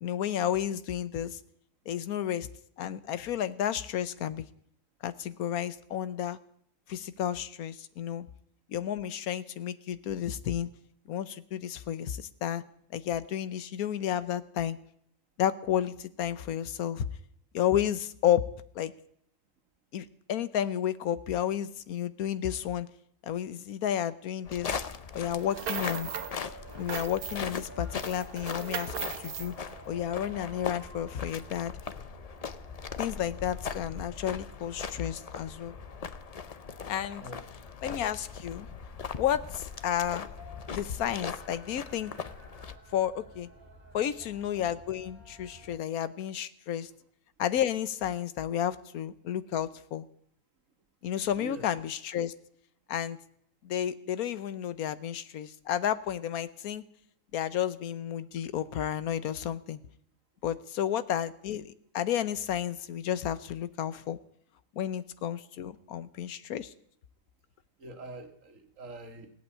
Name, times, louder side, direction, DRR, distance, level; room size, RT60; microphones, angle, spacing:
voice 1, 0.0-1.4 1.9-2.5 2.8-4.5 5.0-6.4 6.9-8.3 8.7-10.7 11.1-12.6 12.9-14.8 15.4-17.1 17.5-18.4 18.7-18.9 19.9-22.9 23.2-24.7 25.1-26.1 26.8-29.5 29.9-31.7 33.0-35.7 36.9-37.2 37.8-38.7 39.2-40.3 40.7-42.1 42.9-43.5 43.9-46.9 47.4-50.0 51.0-52.3 52.9-53.2 53.6-56.8 57.3-59.8 60.4-64.2 64.8-66.7, left 10 dB, 80° left, 15 dB, 1.3 m, -31 dB
sound 1, 24.4-42.7, left 6 dB, 50° left, 0.4 m, -40 dB
sound 2, 25.3-26.4 26.7-27.6 28.0-29.5, right 8 dB, 90° right, 1.5 m, -38 dB
sound 3, 25.8-45.8, right 2 dB, 10° right, 1.9 m, -52 dB
voice 2, 37.1-37.5 51.3-51.7 67.8-69.3, right 2 dB, 60° right, 6 dB, 1.9 m, -45 dB
17.5 x 8.3 x 8.3 m, 0.68 s
omnidirectional pair, 1.5 m